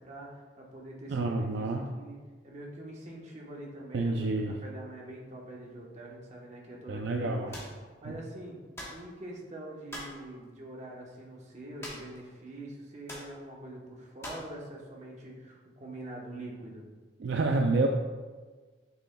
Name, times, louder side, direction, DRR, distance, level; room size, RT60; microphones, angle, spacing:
voice 1, 0.0-2.2 2.4-7.6 8.0-8.6 8.9-16.9, right 1 dB, 35° right, -3 dB, 1.1 m, -44 dB
voice 2, 1.1-1.8 3.9-4.5 6.9-7.5 8.0-8.2 17.2-17.9, right 3 dB, 65° right, 2 dB, 0.4 m, -28 dB
sound 1, 7.5-7.8 8.8-9.0 9.9-10.2 11.8-12.2 12.5-12.6 13.1-13.3 14.2-14.5, left 1 dB, 15° left, 1.1 m, -42 dB
6.7 x 6.2 x 2.3 m, 1.4 s
head